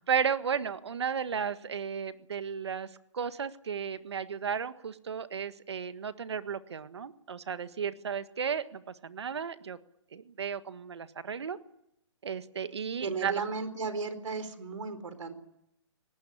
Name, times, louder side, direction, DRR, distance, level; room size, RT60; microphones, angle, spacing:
voice 1, 0.1-9.8 10.1-11.6 12.2-13.4, right 7 dB, 60° right, 11 dB, 1.6 m, -34 dB
voice 2, 13.0-15.3, right 4 dB, 90° right, 11 dB, 4.1 m, -35 dB
23.5 x 19.0 x 9.7 m, 0.81 s
hypercardioid pair, 180°, 16 cm